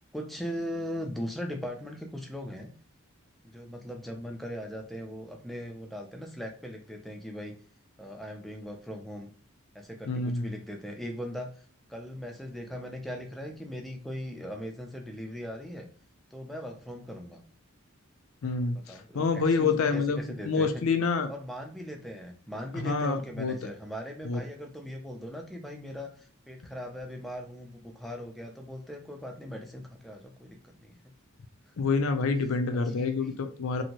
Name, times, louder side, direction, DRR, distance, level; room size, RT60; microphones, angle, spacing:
voice 1, 0.1-2.7 3.5-7.5 8.0-9.3 9.7-11.5 11.9-15.9 16.3-17.4 18.7-20.8 21.3-31.0 32.7-33.4, equal, ahead, 2 dB, 0.4 m, -39 dB
voice 2, 10.1-10.5 18.4-21.3 22.8-23.6 24.2-24.4 31.8-33.8, left 4 dB, 75° left, 7 dB, 0.5 m, -27 dB
2.8 x 2.6 x 2.8 m, 0.42 s
head